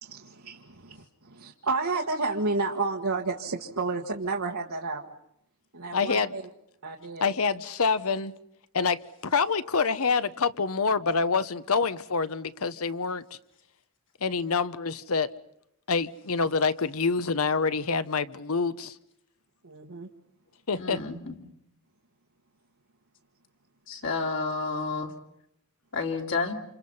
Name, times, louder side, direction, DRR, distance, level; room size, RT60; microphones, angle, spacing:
voice 1, 0.0-5.0 5.7-6.4 6.8-7.3 19.6-20.1, right 3 dB, 85° right, 1.6 m, -31 dB
voice 2, 5.9-6.3 7.2-8.3 8.7-13.2 14.2-15.3 15.9-19.0 20.7-21.0, left 5 dB, 75° left, 0.9 m, -26 dB
voice 3, 20.8-21.3 23.9-25.1 25.9-26.6, left 4 dB, 60° left, 3.0 m, -30 dB
28.5 x 27.5 x 5.6 m
head